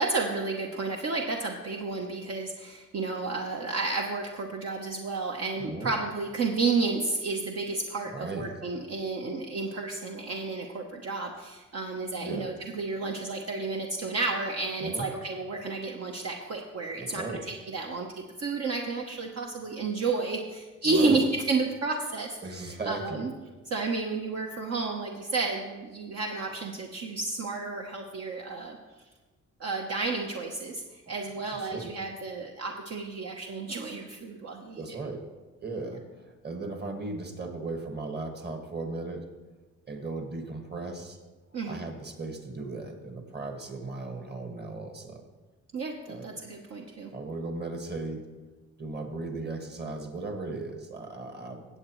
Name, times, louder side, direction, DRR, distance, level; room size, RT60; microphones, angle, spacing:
voice 1, 0.0-23.3 23.7-28.8 29.6-34.9 41.5-41.8 45.7-47.1, right 3 dB, 55° right, 1 dB, 1.0 m, -31 dB
voice 2, 5.6-5.9 8.0-8.6 12.2-12.5 14.8-15.1 17.0-17.4 20.8-21.2 22.4-23.3 31.5-31.9 34.8-35.2 35.6-39.3 39.9-41.2 41.7-45.3 46.1-46.4 47.1-48.2 48.8-51.7, right 3 dB, 35° right, 4 dB, 1.7 m, -37 dB
16.5 x 7.9 x 3.1 m, 1.2 s
cardioid pair, 90°, 30 cm